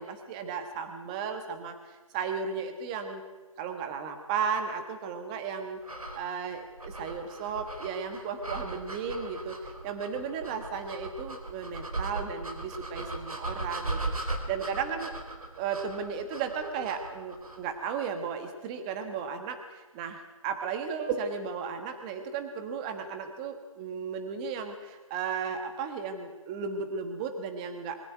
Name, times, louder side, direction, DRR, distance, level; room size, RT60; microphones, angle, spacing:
voice 1, 0.0-3.2 3.6-5.8 6.1-15.1 15.6-28.0, right 6 dB, 10° right, 7 dB, 1.4 m, -35 dB
sound 1, 5.8-17.7, right 2 dB, 80° right, 4.1 m, -38 dB
22.0 x 14.5 x 9.3 m, 1.3 s
figure-of-eight pair, 160°, 18 cm